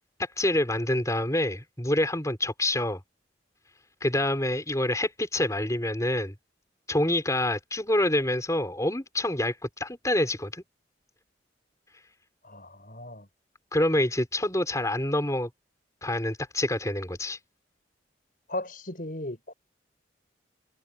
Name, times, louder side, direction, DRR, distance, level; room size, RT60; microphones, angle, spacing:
voice 1, 0.4-3.0 4.0-6.3 6.9-10.6 13.7-15.5 16.0-17.4, left 1 dB, 15° left, 5.1 m, -26 dB
voice 2, 12.4-13.3 18.5-19.5, left 1 dB, 50° left, 6.8 m, -36 dB
head